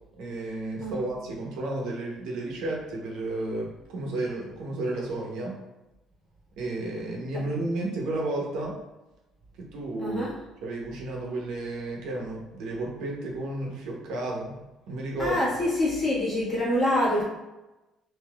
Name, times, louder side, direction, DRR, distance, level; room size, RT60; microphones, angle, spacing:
voice 1, 0.2-5.6 6.6-8.7 9.6-10.2 10.6-14.5 14.9-15.4, right 2 dB, 80° right, -1 dB, 0.7 m, -32 dB
voice 2, 10.0-10.4 15.2-17.2, left 1 dB, 15° left, -8 dB, 1.4 m, -26 dB
3.6 x 2.7 x 2.3 m, 1.0 s
cardioid pair, 150°, 0 cm